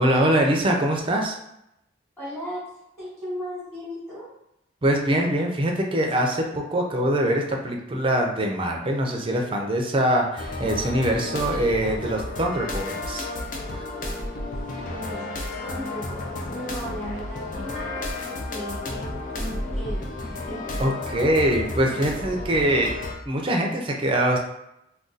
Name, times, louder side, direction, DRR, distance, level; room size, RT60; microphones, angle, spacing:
voice 1, 0.0-1.4 4.8-13.3 13.7-13.8 20.8-23.0 23.3-24.4, right 1 dB, 30° right, 1 dB, 0.5 m, -23 dB
voice 2, 2.2-2.7 3.0-4.3 14.8-15.2 15.6-20.6, equal, 5° left, -10 dB, 1.2 m, -36 dB
sound 1, 10.4-23.2, left 2 dB, 45° left, 0.5 m, -32 dB
2.5 x 2.3 x 3.8 m, 0.84 s
head